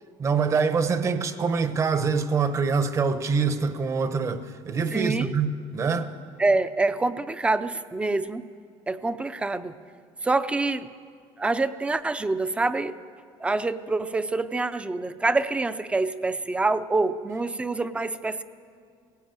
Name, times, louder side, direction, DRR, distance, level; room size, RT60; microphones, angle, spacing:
voice 1, 0.2-6.1, right 5 dB, 25° right, 0.9 m, -25 dB
voice 2, 4.9-5.3 6.4-8.5 8.9-9.7 10.2-10.9 11.4-12.9 13.4-18.4, right 3 dB, 10° right, 0.5 m, -26 dB
18.5 x 16.5 x 9.0 m
cardioid pair, 170°, 11 cm